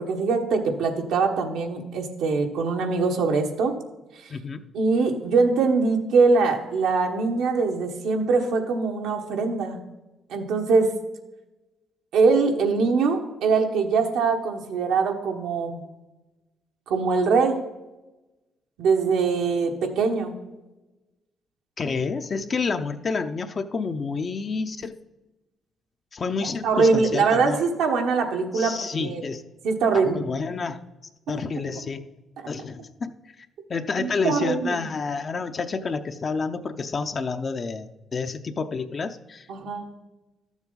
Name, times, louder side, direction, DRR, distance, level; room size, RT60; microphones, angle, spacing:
voice 1, 0.0-3.7 4.2-4.3 4.7-9.8 10.3-10.9 12.1-15.9 16.9-17.7 18.8-20.4 26.6-29.2 29.6-30.3 31.3-31.4 34.0-34.8 39.5-39.9, right 4 dB, 85° right, 3 dB, 1.3 m, -22 dB
voice 2, 4.3-4.6 21.8-24.9 26.1-27.6 28.5-29.4 29.9-30.8 31.3-32.0 32.5-39.5, left 4 dB, 40° left, 8 dB, 0.6 m, -29 dB
12.0 x 7.2 x 4.0 m, 1.1 s
cardioid pair, 90°, 0 cm